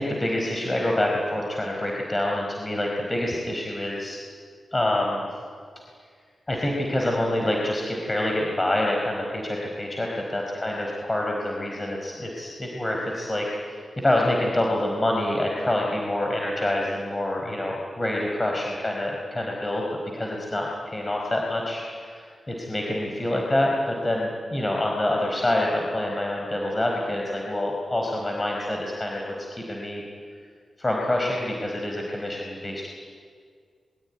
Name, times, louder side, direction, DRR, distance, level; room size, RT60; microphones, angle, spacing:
voice 1, 0.0-4.2 4.7-5.3 6.5-19.8 20.1-29.2 29.5-30.0 30.8-32.9, left 1 dB, 25° left, 0 dB, 4.7 m, -26 dB
25.5 x 23.0 x 9.9 m, 2.1 s
cardioid pair, 60°, 0 cm